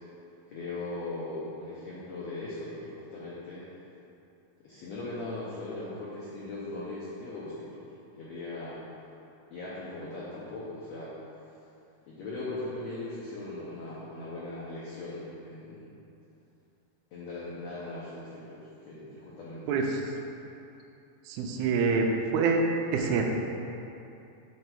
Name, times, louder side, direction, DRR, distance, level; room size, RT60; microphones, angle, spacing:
voice 1, 0.5-3.7 4.6-8.8 9.5-11.1 12.1-15.9 17.1-19.8, left 2 dB, 85° left, -7 dB, 1.5 m, -39 dB
voice 2, 19.7-20.1 21.3-22.1 22.3-23.2, right 4 dB, 85° right, 2 dB, 2.5 m, -26 dB
7.4 x 3.3 x 5.9 m, 2.8 s
omnidirectional pair, 4.3 m